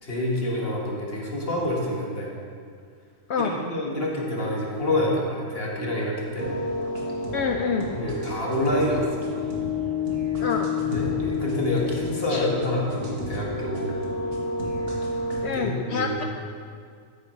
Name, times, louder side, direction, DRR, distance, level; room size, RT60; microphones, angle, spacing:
voice 1, 0.0-2.3 3.4-6.5 7.9-9.3 10.8-14.0 15.3-16.2, left 1 dB, 45° left, -3 dB, 1.8 m, -27 dB
sound 1, 6.4-15.4, left 4 dB, 45° right, 1.8 m, -30 dB
voice 2, 7.3-7.9 10.4-10.7 12.3-12.4 15.4-16.2, left 5 dB, 65° left, 4 dB, 0.7 m, -27 dB
13.0 x 9.1 x 3.2 m, 2.1 s
omnidirectional pair, 1.4 m